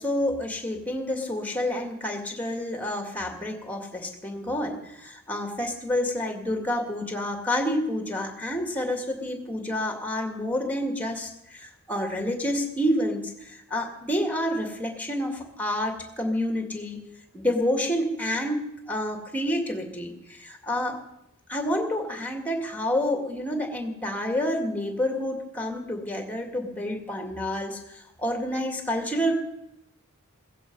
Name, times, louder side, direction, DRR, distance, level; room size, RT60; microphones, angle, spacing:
voice 1, 0.0-17.0 17.3-18.6 18.9-21.0 21.5-29.4, left 1 dB, 10° left, 3 dB, 2.3 m, -29 dB
16.5 x 15.0 x 5.5 m, 0.83 s
head